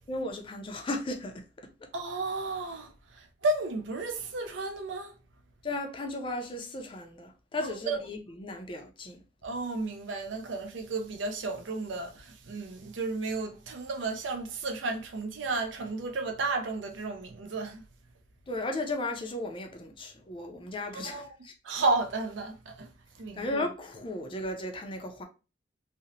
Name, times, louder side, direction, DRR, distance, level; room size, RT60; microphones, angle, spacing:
voice 1, 0.1-1.4 5.6-9.2 18.5-21.5 23.3-25.3, left 2 dB, 25° left, 0.4 m, -35 dB
voice 2, 1.9-5.1 7.6-8.0 9.4-17.8 20.9-21.3 21.6-22.9 23.2-23.5, right 3 dB, 75° right, 0.5 m, -33 dB
2.8 x 2.0 x 2.6 m
head